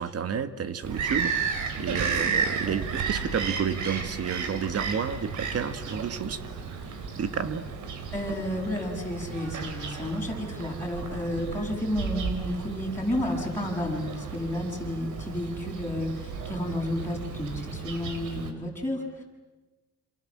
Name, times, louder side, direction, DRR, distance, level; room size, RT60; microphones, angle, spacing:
voice 1, 0.0-6.4 6.7-6.8 7.1-7.6, right 7 dB, 55° right, 11 dB, 1.8 m, -31 dB
Bird vocalization bird call bird song, 0.8-18.5, right 5 dB, 75° right, 3.8 m, -33 dB
voice 2, 8.1-19.2, left 1 dB, 10° left, -3 dB, 7.4 m, -31 dB
27.5 x 27.5 x 7.5 m, 1.2 s
cardioid pair, 90°, 30 cm